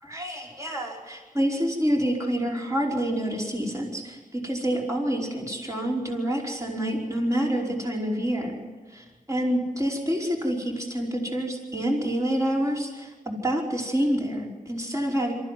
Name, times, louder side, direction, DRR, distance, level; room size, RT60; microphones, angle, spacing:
voice 1, 0.0-15.3, equal, 25° right, -2 dB, 5.2 m, -27 dB
23.5 x 15.0 x 9.3 m, 1.3 s
cardioid pair, 55°, 14 cm